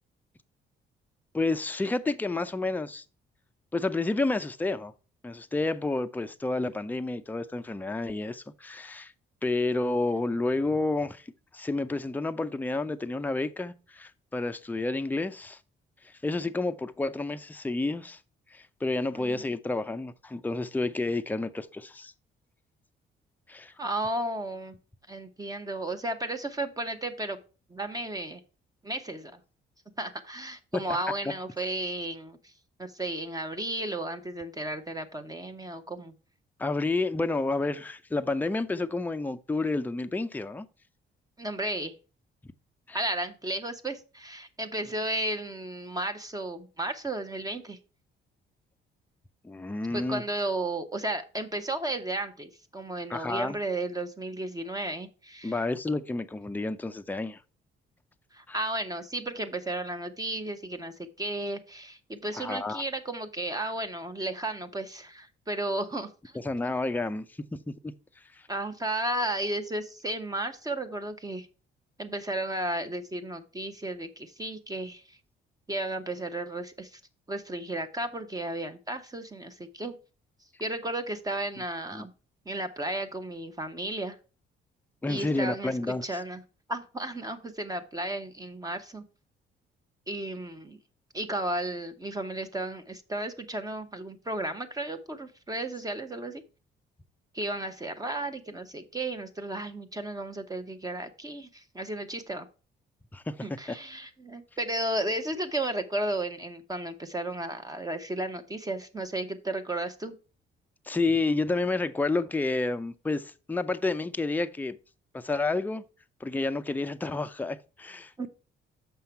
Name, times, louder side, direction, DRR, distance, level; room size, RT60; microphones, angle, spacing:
voice 1, 1.3-3.0 3.7-4.9 5.2-9.1 9.4-15.6 16.0-18.2 18.5-22.1 23.5-23.7 30.7-30.8 36.6-40.7 42.4-42.5 42.9-43.1 49.4-50.2 53.1-53.6 55.4-57.4 58.5-58.6 62.4-62.8 66.3-67.3 67.5-67.9 68.3-68.5 81.9-82.1 85.0-86.2 103.1-103.8 110.9-114.8 115.1-115.8 116.2-118.3, left 2 dB, 10° left, 0.5 m, -30 dB
voice 2, 23.8-24.8 25.1-27.4 27.7-28.4 28.8-29.4 30.0-32.5 32.8-36.1 41.4-41.9 42.9-47.8 49.9-55.5 58.3-66.3 66.6-66.7 68.5-71.5 72.0-75.2 75.7-77.0 77.3-80.0 80.6-82.1 82.5-84.2 85.1-86.4 86.7-89.0 90.1-90.8 91.1-96.4 97.3-102.5 103.4-110.1 118.2-118.3, right 1 dB, 20° right, 0.8 m, -34 dB
6.8 x 5.6 x 4.4 m
cardioid pair, 90°, 20 cm